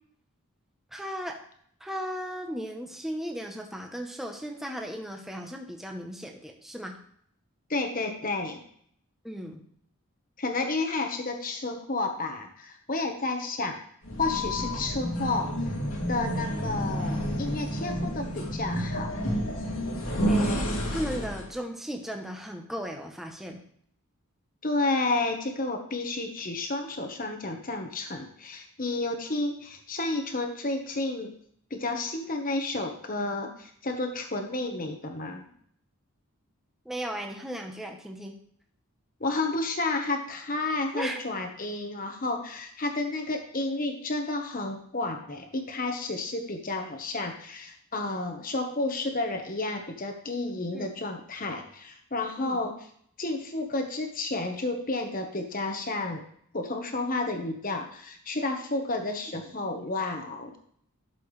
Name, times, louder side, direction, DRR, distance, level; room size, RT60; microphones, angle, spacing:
voice 1, 0.9-1.4 1.8-7.0 9.2-9.6 20.3-23.6 36.8-38.4 40.9-41.2 50.7-50.9 52.4-52.6 59.6-59.7, equal, ahead, 2 dB, 1.0 m, -36 dB
voice 2, 7.7-8.6 10.4-13.8 14.2-15.5 16.1-19.2 24.6-31.3 31.7-35.5 39.2-52.7 53.2-56.2 56.5-60.5, left 2 dB, 40° left, 4 dB, 1.2 m, -31 dB
sound 1, 14.0-21.5, equal, 85° left, 2.7 m, -30 dB
12.0 x 6.9 x 3.3 m, 0.64 s
head